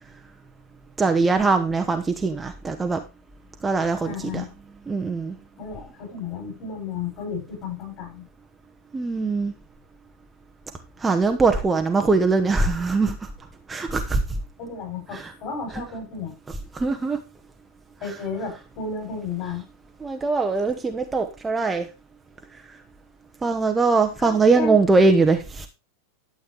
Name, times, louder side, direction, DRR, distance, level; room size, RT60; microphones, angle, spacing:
voice 1, 1.0-3.0 3.6-4.4 4.9-5.3 8.9-9.5 11.0-13.2 13.7-14.2 15.1-15.3 15.7-15.8 16.7-17.2 20.0-21.9 23.4-25.7, right 3 dB, 15° right, 6 dB, 1.0 m, -21 dB
voice 2, 4.0-4.5 5.6-8.3 14.6-16.3 18.0-19.6 24.2-24.8, left 5 dB, 40° left, 2 dB, 7.5 m, -32 dB
12.0 x 8.2 x 3.3 m, 0.27 s
figure-of-eight pair, 90°, 0 cm